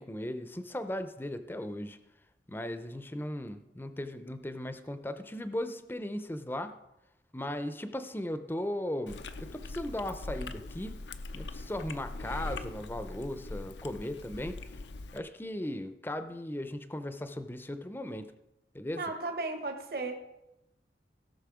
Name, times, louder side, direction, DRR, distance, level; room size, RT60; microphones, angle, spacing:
voice 1, 0.0-2.0 2.5-6.8 7.3-11.0 11.3-14.6 15.1-18.3 18.7-19.0, left 1 dB, 10° left, 10 dB, 0.6 m, -37 dB
Chewing mastication, 9.1-15.2, left 2 dB, 85° left, 0.6 m, -41 dB
voice 2, 19.0-20.1, right 3 dB, 55° right, 4 dB, 1.3 m, -35 dB
17.0 x 6.3 x 4.9 m, 0.91 s
head